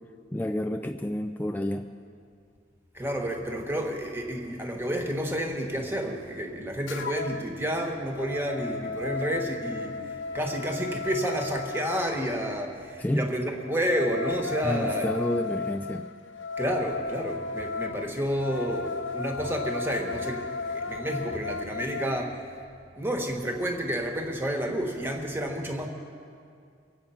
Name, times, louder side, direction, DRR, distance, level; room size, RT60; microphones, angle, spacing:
voice 1, 0.3-1.9 13.0-13.3 14.6-16.1, left 1 dB, 10° left, 5 dB, 0.3 m, -29 dB
voice 2, 2.9-10.0 10.3-15.1 16.6-22.4 22.9-25.9, equal, 10° right, 2 dB, 1.3 m, -30 dB
sound 1, 6.9-7.5 7.9-12.1 13.6-22.1, left 4 dB, 90° left, 0.8 m, -34 dB
24.0 x 8.2 x 5.7 m, 2.3 s
head